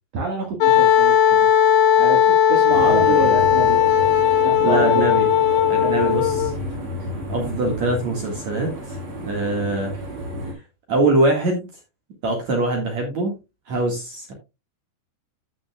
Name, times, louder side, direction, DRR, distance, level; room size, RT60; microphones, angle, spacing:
voice 1, 0.1-1.5 1.9-3.8 4.4-5.1 5.8-6.2, right 3 dB, 80° right, 0 dB, 1.4 m, -27 dB
Wind instrument woodwind instrument, 0.6-6.6, left 9 dB, 80° left, 2.9 m, -17 dB
sound 1, 2.6-7.2, left 8 dB, 50° left, 3.4 m, -36 dB
sound 2, 2.7-10.5, equal, 40° right, 4.2 m, -32 dB
voice 2, 2.8-3.4 4.6-5.3 5.7-6.5 7.3-9.0 9.2-10.0 10.5-10.6 10.9-11.7 12.2-13.4 13.7-14.3, right 2 dB, 60° right, 2 dB, 1.9 m, -23 dB
15.0 x 6.4 x 2.2 m, 0.26 s
omnidirectional pair, 5.6 m